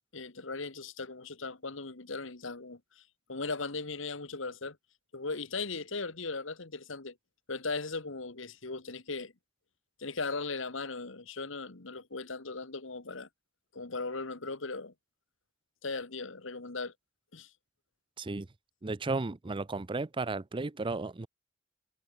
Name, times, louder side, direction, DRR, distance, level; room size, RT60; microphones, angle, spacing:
voice 1, 0.1-3.0 3.3-4.8 5.1-7.1 7.5-9.3 10.0-13.3 13.7-14.9 15.8-16.9 17.3-17.5, left 3 dB, 70° left, 1.7 m, -38 dB
voice 2, 18.8-21.3, right 3 dB, 25° right, 0.5 m, -34 dB
head